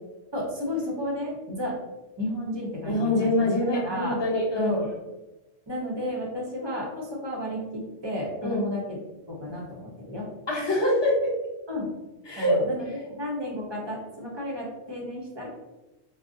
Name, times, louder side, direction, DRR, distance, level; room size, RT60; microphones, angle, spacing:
voice 1, 0.3-1.8 2.2-3.5 3.7-4.2 4.5-4.9 5.7-9.0 9.3-10.3 11.7-11.9 12.4-15.5, left 1 dB, 30° right, -3 dB, 0.5 m, -32 dB
voice 2, 2.9-4.7 8.4-8.6 10.5-11.1 12.3-12.6, left 1 dB, 25° left, -5 dB, 0.8 m, -24 dB
2.5 x 2.0 x 3.6 m, 1.0 s
omnidirectional pair, 1.2 m